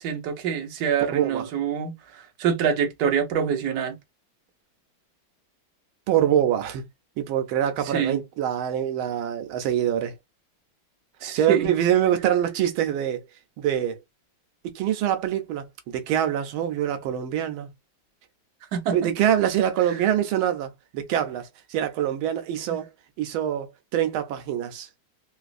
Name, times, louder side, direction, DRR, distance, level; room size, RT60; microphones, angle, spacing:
voice 1, 0.0-4.0 7.8-8.2 11.2-11.7 18.7-19.1, right 7 dB, 65° right, 1.2 m, -26 dB
voice 2, 1.1-1.4 6.1-6.8 7.2-10.1 11.3-13.2 13.6-14.0 14.6-17.7 18.9-22.9 23.2-24.9, right 10 dB, 90° right, 1.5 m, -25 dB
3.9 x 2.5 x 2.4 m
omnidirectional pair, 2.2 m